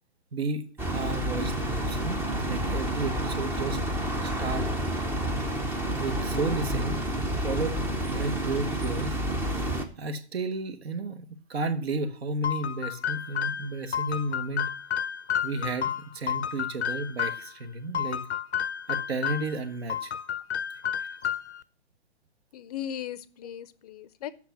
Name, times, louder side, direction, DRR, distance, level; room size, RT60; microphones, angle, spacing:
voice 1, 0.3-0.7 0.9-3.8 4.2-4.7 6.0-7.0 7.4-7.8 8.1-9.2 10.0-14.7 15.4-18.2 18.9-20.1 21.0-21.1, right 2 dB, 65° right, 1.3 m, -32 dB
sound 1, 0.8-9.9, right 1 dB, 5° right, 0.6 m, -29 dB
sound 2, 12.4-17.5 17.9-19.6 19.9-21.6, left 8 dB, 75° left, 0.6 m, -31 dB
voice 2, 22.5-24.3, left 10 dB, 35° left, 0.6 m, -37 dB
8.3 x 6.0 x 7.2 m
figure-of-eight pair, 125°, 34 cm